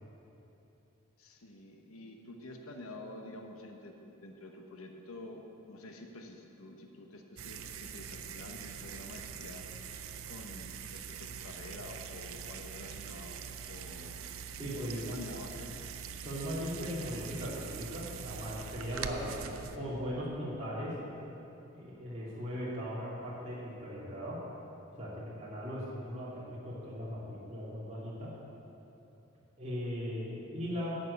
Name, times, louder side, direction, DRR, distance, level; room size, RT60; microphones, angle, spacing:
voice 1, 1.2-9.9 10.3-14.2 14.7-15.7, left 1 dB, 80° left, 3 dB, 1.1 m, -48 dB
sound 1, 7.4-19.8, right 7 dB, 80° right, 0.6 m, -43 dB
voice 2, 14.6-15.2 16.2-20.9 21.7-24.4 25.0-28.3 29.6-30.9, equal, 30° right, -8 dB, 2.5 m, -38 dB
11.0 x 6.4 x 8.4 m, 3.0 s
head